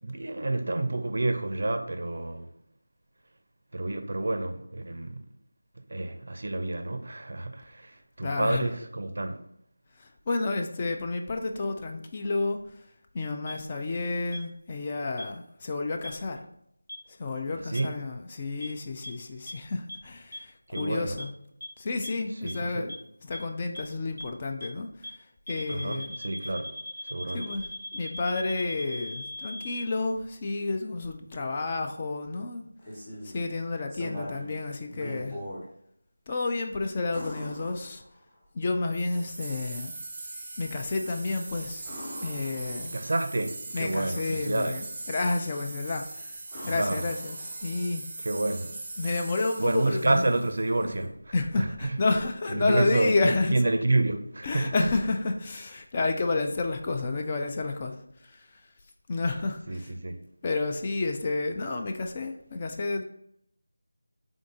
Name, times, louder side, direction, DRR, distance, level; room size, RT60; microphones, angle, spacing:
voice 1, 0.0-2.5 3.7-5.3 5.9-9.4 17.6-18.0 20.7-21.2 22.4-22.9 25.7-26.8 27.0-27.5 42.9-44.8 46.6-47.0 48.2-48.7 49.6-52.0 52.5-54.9 59.7-60.3, right 2 dB, 60° right, 0.4 m, -29 dB
voice 2, 8.2-8.7 10.0-12.6 13.1-16.4 17.2-21.3 21.8-22.9 23.2-25.2 25.5-26.2 27.3-27.6 27.9-32.7 33.2-35.4 36.3-38.0 38.5-39.9 40.6-41.9 42.2-42.9 43.7-46.4 46.7-48.0 49.0-50.2 51.3-53.5 54.4-58.0 58.2-58.6 59.1-59.9 60.4-63.0, left 3 dB, 25° left, 0.3 m, -30 dB
sound 1, 13.5-13.6 14.3-14.4 15.2-15.3 16.0-16.1 16.9-17.0 17.7-17.8 18.6-18.7 19.0-19.1 19.5-19.6 19.9-20.0 20.3-20.4 20.7-20.8 21.2-21.3 21.6-21.7 22.0-22.1 22.5-22.6 22.9-23.0 23.3-23.4 23.7-23.8 24.2-24.3 24.6-24.7 25.0-25.1 25.5-29.9, left 1 dB, 70° left, 0.8 m, -38 dB
sound 2, 32.6-33.4 33.9-34.5 34.9-35.6 37.1-38.4 41.8-43.1 45.6-46.0 46.5-47.9 50.0-50.1, equal, 5° right, 1.2 m, -41 dB
sound 3, 38.9-50.9, right 2 dB, 25° right, 0.7 m, -41 dB
3.6 x 2.6 x 3.5 m
figure-of-eight pair, 165°, 0 cm